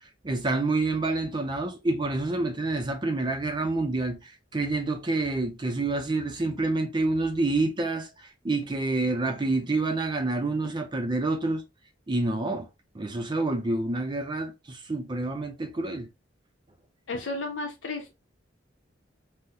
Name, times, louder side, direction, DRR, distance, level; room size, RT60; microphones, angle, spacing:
voice 1, 0.2-11.6 12.1-12.7 12.9-16.1, right 2 dB, 25° right, 0.4 m, -28 dB
voice 2, 17.1-18.1, left 2 dB, 85° left, 0.7 m, -33 dB
3.7 x 2.1 x 2.7 m
head